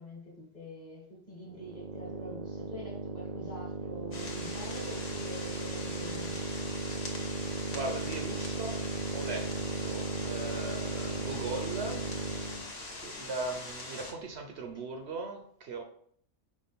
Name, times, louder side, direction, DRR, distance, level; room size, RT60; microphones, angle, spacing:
voice 1, 0.0-6.4, left 1 dB, 35° left, -2 dB, 1.4 m, -46 dB
sound 1, 1.5-12.7, right 3 dB, 85° right, 0.3 m, -36 dB
sound 2, 4.1-14.1, left 2 dB, 55° left, 1.2 m, -42 dB
voice 2, 7.7-8.8 9.1-9.5 9.8-12.1 12.4-12.5 12.9-15.8, right 3 dB, 65° right, 4 dB, 0.9 m, -39 dB
5.1 x 2.4 x 4.0 m, 0.63 s
omnidirectional pair, 1.3 m